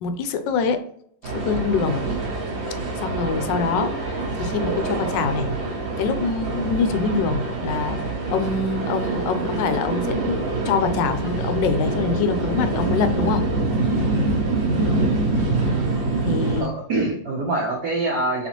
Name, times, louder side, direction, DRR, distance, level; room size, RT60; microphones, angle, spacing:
voice 1, 0.0-0.8 1.2-2.0 3.0-5.5 6.0-8.0 8.3-13.4 16.3-16.7, left 5 dB, 80° left, 9 dB, 1.2 m, -25 dB
sound 1, 1.2-16.6, right 2 dB, 90° right, 2.0 m, -25 dB
voice 2, 16.5-18.5, right 2 dB, 70° right, -4 dB, 1.4 m, -24 dB
4.1 x 4.0 x 3.0 m, 0.66 s
omnidirectional pair, 2.0 m